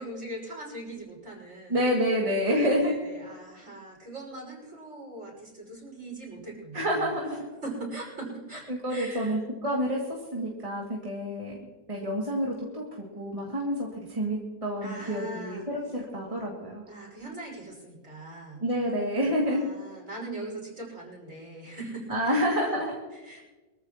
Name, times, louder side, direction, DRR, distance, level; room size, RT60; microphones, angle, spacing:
voice 1, 0.0-1.8 2.5-7.1 7.6-9.4 14.8-15.6 16.9-18.6 19.4-22.4 23.1-23.4, right 2 dB, 50° right, -3 dB, 6.2 m, -40 dB
voice 2, 1.7-3.0 6.7-7.5 8.7-10.0 10.3-11.5 11.9-16.8 18.6-19.7 22.1-23.0, equal, 20° right, -4 dB, 2.5 m, -28 dB
24.5 x 14.5 x 3.0 m, 1.2 s
omnidirectional pair, 1.7 m